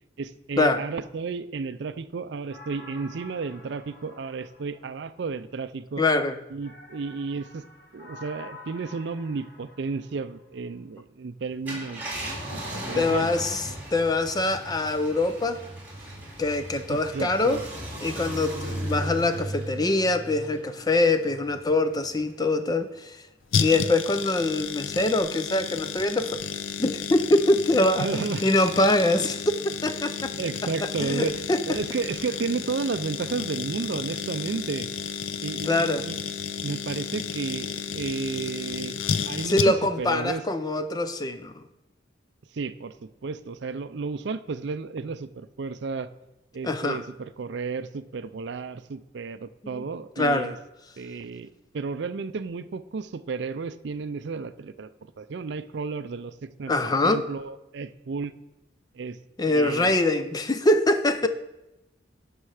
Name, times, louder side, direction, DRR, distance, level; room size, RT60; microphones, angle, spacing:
voice 1, 0.2-6.0 6.5-7.6 7.9-12.6 12.9-13.3 16.9-17.6 28.0-28.5 30.4-31.4 31.7-35.1 35.4-36.1 36.6-39.0 39.3-40.4 42.5-42.9 43.2-46.1 46.5-50.6 51.0-54.9 55.2-56.7 57.0-58.3 58.9-59.2 59.5-59.9, right 4 dB, 60° right, 13 dB, 0.4 m, -32 dB
sound 1, 2.5-5.3 6.6-10.4 12.1-13.4, left 1 dB, 50° left, 1.5 m, -48 dB
voice 2, 6.0-6.4 13.0-13.6 13.9-15.6 16.4-17.6 18.0-23.2 23.5-26.4 26.8-29.4 29.8-30.3 30.8-31.8 35.6-36.1 39.4-41.6 46.6-47.0 49.7-49.8 50.2-50.5 56.7-57.3 59.4-61.3, left 2 dB, 20° left, 10 dB, 0.4 m, -24 dB
Car, 11.5-22.3 22.8-22.9 25.0-25.2, right 1 dB, 10° right, 2.6 m, -37 dB
sound 2, 23.5-40.0 40.3-40.4, left 7 dB, 80° left, 0.5 m, -32 dB
12.0 x 5.5 x 4.9 m, 0.94 s
head